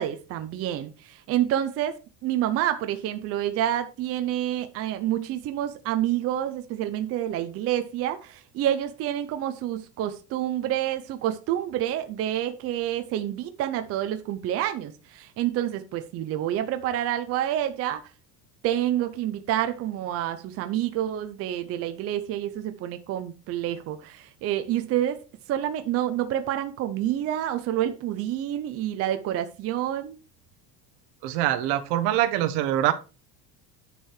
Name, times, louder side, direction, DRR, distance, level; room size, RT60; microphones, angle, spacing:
voice 1, 0.0-2.0 2.2-18.0 18.6-30.2, right 12 dB, 35° right, 0.6 m, -28 dB
voice 2, 31.2-32.9, right 13 dB, 70° right, 1.2 m, -24 dB
9.9 x 4.7 x 4.7 m
cardioid pair, 180°, 42 cm